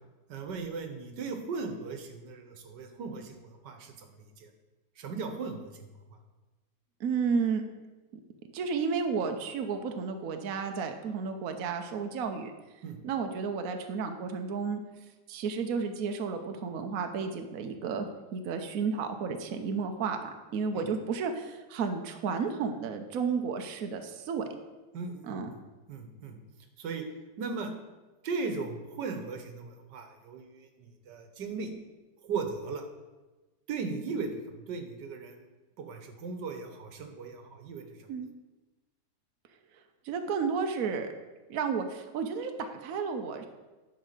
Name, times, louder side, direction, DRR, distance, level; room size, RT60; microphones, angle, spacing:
voice 1, 0.3-4.5 5.0-5.9 12.8-13.0 20.7-20.8 24.9-25.6 25.9-26.4 26.8-27.0 27.4-27.7 28.2-31.7 32.2-32.8 33.7-35.5 35.8-38.1, right 4 dB, 80° right, 6 dB, 1.7 m, -37 dB
voice 2, 7.0-7.6 8.1-8.2 8.5-12.5 13.0-14.8 15.3-24.5 25.2-25.5 38.1-38.3 40.0-41.1 41.5-43.5, right 5 dB, 60° right, 5 dB, 1.1 m, -32 dB
11.0 x 4.6 x 6.6 m, 1.2 s
omnidirectional pair, 1.9 m